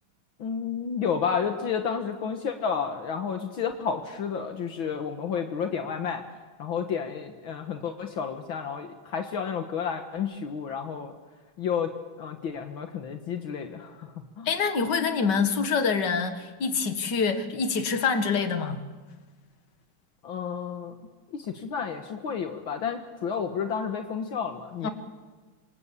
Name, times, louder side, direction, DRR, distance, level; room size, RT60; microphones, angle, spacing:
voice 1, 0.4-6.2 6.6-11.1 11.6-14.5 20.2-20.9 21.3-24.9, left 6 dB, 70° left, 5 dB, 2.2 m, -31 dB
voice 2, 14.5-18.9 24.8-24.9, left 5 dB, 55° left, 7 dB, 2.4 m, -26 dB
27.0 x 26.0 x 8.5 m, 1.3 s
omnidirectional pair, 2.3 m